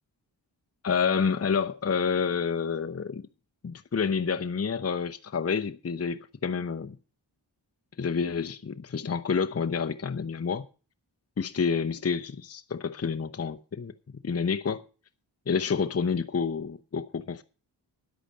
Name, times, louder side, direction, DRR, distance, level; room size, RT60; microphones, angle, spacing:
voice 1, 0.8-3.2 3.6-7.0 8.0-10.7 11.4-13.9 14.2-14.8 15.5-17.4, left 6 dB, 35° left, 0.7 m, -28 dB
10.5 x 8.1 x 6.5 m
cardioid pair, 40°, 45 cm